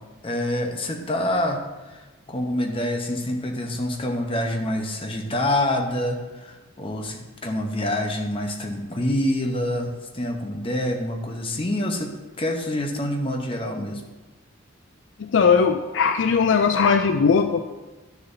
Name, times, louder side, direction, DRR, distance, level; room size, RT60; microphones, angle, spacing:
voice 1, 0.2-14.0, left 1 dB, 30° left, 3 dB, 0.9 m, -26 dB
voice 2, 15.2-17.6, left 5 dB, 65° left, 8 dB, 0.4 m, -19 dB
11.0 x 6.7 x 2.7 m, 1.2 s
head